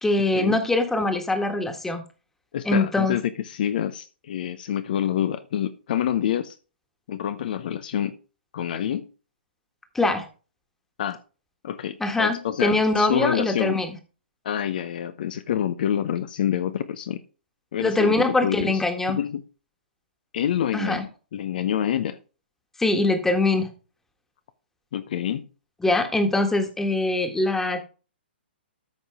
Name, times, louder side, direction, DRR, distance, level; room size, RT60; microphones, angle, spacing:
voice 1, 0.0-2.0 2.7-3.2 10.0-10.3 12.0-13.9 17.8-19.2 20.7-21.1 22.8-23.7 25.8-27.8, left 2 dB, 5° left, 6 dB, 1.6 m, -23 dB
voice 2, 2.5-6.6 7.1-8.1 8.5-9.0 11.0-11.2 11.6-13.8 14.4-17.2 17.7-18.8 19.1-19.4 20.3-21.1 21.3-22.2 24.9-25.5, left 10 dB, 55° left, 11 dB, 0.7 m, -27 dB
13.5 x 5.4 x 3.6 m, 0.35 s
figure-of-eight pair, 125°, 6 cm